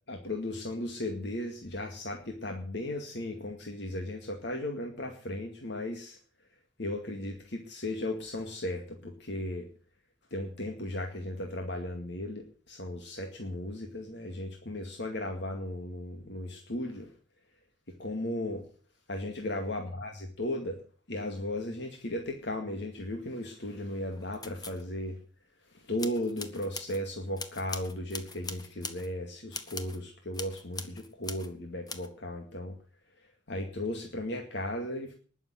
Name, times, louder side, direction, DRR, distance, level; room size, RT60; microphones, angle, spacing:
voice 1, 0.1-6.2 6.8-9.7 10.3-17.1 17.9-18.6 19.1-20.8 21.1-25.2 25.7-32.7 33.5-35.1, left 1 dB, 65° left, 3 dB, 2.2 m, -36 dB
sound 1, 24.1-24.9 26.0-27.0 27.4-29.1 29.5-30.0 30.3-31.5 31.9-32.1, left 4 dB, 20° left, 1.5 m, -41 dB
20.0 x 7.3 x 7.8 m, 0.43 s
head